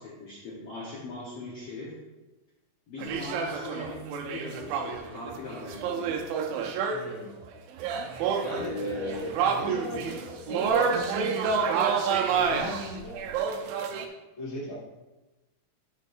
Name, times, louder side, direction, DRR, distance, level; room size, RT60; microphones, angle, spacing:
voice 1, 0.0-1.9 2.9-6.2 8.5-9.3, left 2 dB, 75° left, -5 dB, 1.4 m, -40 dB
sound 1, 3.0-7.2 7.4-7.5 7.8-14.1, right 6 dB, 85° right, 2.3 m, -29 dB
voice 2, 6.9-7.4 8.0-11.8 12.2-13.8 14.4-14.7, equal, 40° left, -6 dB, 0.4 m, -38 dB
11.0 x 6.1 x 2.6 m, 1.1 s
omnidirectional pair, 4.3 m